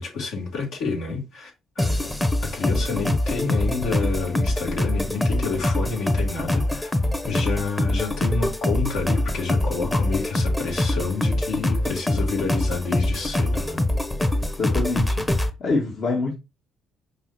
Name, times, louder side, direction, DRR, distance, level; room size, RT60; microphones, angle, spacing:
voice 1, 0.0-1.5 1.8-2.1 2.4-6.9 7.2-13.8, left 4 dB, 70° left, 3.6 m, -28 dB
sound 1, 1.8-15.5, left 1 dB, 15° left, 1.0 m, -24 dB
voice 2, 14.6-16.3, left 3 dB, 55° left, 2.1 m, -26 dB
5.6 x 5.4 x 3.1 m
hypercardioid pair, 55°, 0 cm